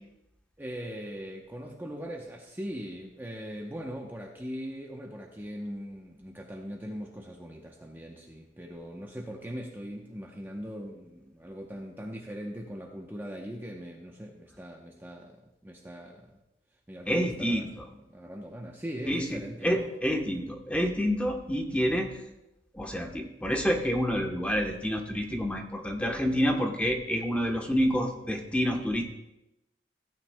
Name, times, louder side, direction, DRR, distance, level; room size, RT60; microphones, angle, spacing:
voice 1, 0.6-15.4 15.6-16.4 16.9-19.9, equal, 10° right, 0 dB, 0.8 m, -40 dB
voice 2, 17.1-17.7 19.1-22.2 22.7-29.0, equal, 5° left, 2 dB, 1.0 m, -28 dB
16.5 x 9.0 x 2.2 m, 0.90 s
head